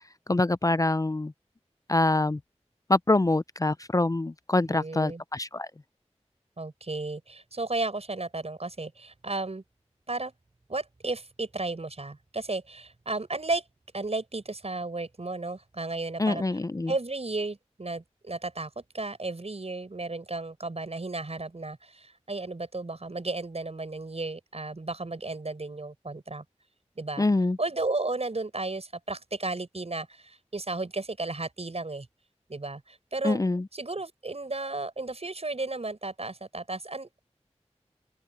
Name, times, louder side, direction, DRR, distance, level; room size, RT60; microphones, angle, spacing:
voice 1, 0.3-1.3 1.9-2.4 2.9-5.7 16.2-16.9 27.2-27.6 33.2-33.6, left 2 dB, 30° left, 0.4 m, -25 dB
voice 2, 4.7-5.2 6.6-9.6 10.1-10.3 10.7-13.6 13.9-16.4 16.9-26.4 27.0-27.3 27.6-32.1 32.5-33.4 33.7-37.2, right 2 dB, 65° right, 7.0 m, -34 dB
open air
wide cardioid pair, 40°, 12 cm